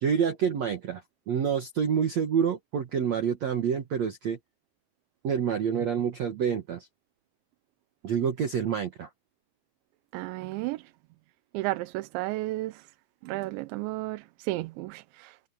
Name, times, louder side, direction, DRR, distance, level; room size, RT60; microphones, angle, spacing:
voice 1, 0.0-4.4 5.2-6.9 8.0-9.1, right 7 dB, 60° right, 1.9 m, -27 dB
voice 2, 10.1-10.8 11.5-12.8 13.2-15.5, right 19 dB, 85° right, 3.0 m, -33 dB
omnidirectional pair, 5.1 m